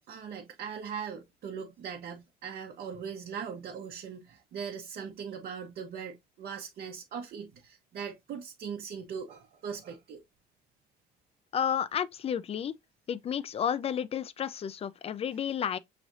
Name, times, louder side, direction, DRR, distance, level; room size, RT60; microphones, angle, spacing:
voice 1, 0.0-10.2, right 7 dB, 60° right, 0.9 m, -40 dB
voice 2, 11.5-12.7 13.1-15.8, left 8 dB, 35° left, 0.4 m, -31 dB
5.9 x 3.3 x 2.6 m
cardioid pair, 110°, 17 cm